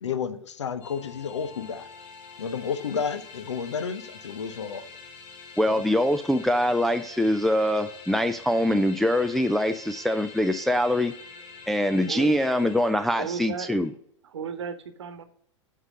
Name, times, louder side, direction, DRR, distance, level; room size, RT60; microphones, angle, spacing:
voice 1, 0.0-1.9 2.4-4.8 5.7-5.8, left 6 dB, 65° left, 12 dB, 0.8 m, -31 dB
sound 1, 0.8-13.9, left 4 dB, 30° left, 1.9 m, -46 dB
voice 2, 5.6-11.1 11.7-13.9, left 1 dB, ahead, 7 dB, 0.3 m, -23 dB
voice 3, 13.2-13.7 14.2-15.2, right 7 dB, 65° right, 10 dB, 1.1 m, -34 dB
7.9 x 5.7 x 6.5 m, 0.65 s
figure-of-eight pair, 95°, 16 cm